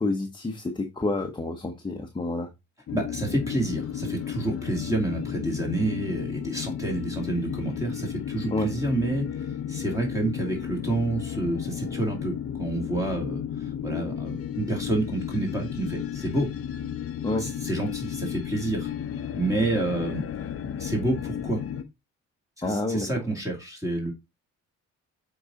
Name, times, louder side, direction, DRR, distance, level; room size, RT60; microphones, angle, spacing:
voice 1, 0.0-2.5 8.5-8.7 17.2-17.5 22.6-23.1, left 2 dB, 15° left, 1.0 m, -28 dB
sound 1, 2.9-21.8, left 9 dB, 50° left, 0.8 m, -33 dB
voice 2, 2.9-16.5 17.4-18.9 19.3-20.2 20.8-21.6 22.6-24.1, right 2 dB, 10° right, 2.7 m, -29 dB
7.7 x 4.0 x 3.8 m
cardioid pair, 90°, 30 cm